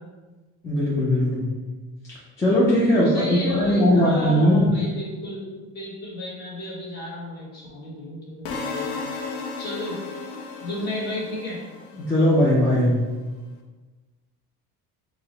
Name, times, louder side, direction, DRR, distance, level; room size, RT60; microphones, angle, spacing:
voice 1, 0.6-1.4 2.4-4.7 12.0-12.9, equal, 10° left, -8 dB, 0.4 m, -19 dB
voice 2, 2.9-5.4 5.7-9.0 9.6-10.0 10.6-11.6, left 1 dB, 25° left, -5 dB, 1.1 m, -32 dB
sound 1, 8.5-12.5, left 4 dB, 55° left, 0.6 m, -34 dB
4.6 x 2.1 x 3.8 m, 1.3 s
cardioid pair, 175°, 37 cm